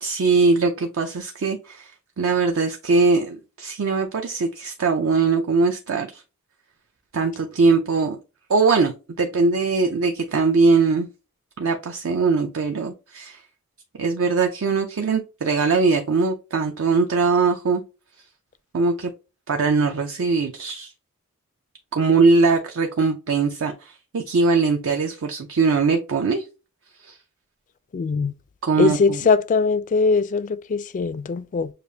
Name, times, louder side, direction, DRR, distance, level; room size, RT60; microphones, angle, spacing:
voice 1, 0.0-1.9 2.2-6.2 7.1-8.2 8.5-8.9 9.2-11.1 11.6-13.4 14.0-17.8 18.7-19.1 19.5-20.9 21.9-26.4 27.0-27.2 28.6-29.3, right 4 dB, 60° right, 0.5 m, -21 dB
voice 2, 27.9-28.3 28.8-31.7, left 4 dB, 35° left, 0.3 m, -21 dB
6.5 x 2.4 x 2.7 m
head